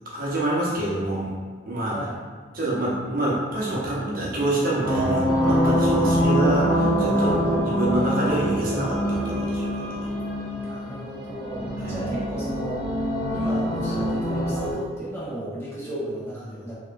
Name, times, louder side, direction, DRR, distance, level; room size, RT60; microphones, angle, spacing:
voice 1, 0.1-1.3 1.6-2.0 2.5-7.3 7.7-9.9 11.8-11.9, right 1 dB, 50° right, -6 dB, 0.8 m, -26 dB
voice 2, 1.9-2.2 7.1-7.7 10.5-12.8 13.3-16.7, right 1 dB, 15° left, -10 dB, 1.3 m, -35 dB
sound 1, 4.8-14.7, equal, 5° right, 1.5 m, -24 dB
4.5 x 2.9 x 2.6 m, 1.5 s
head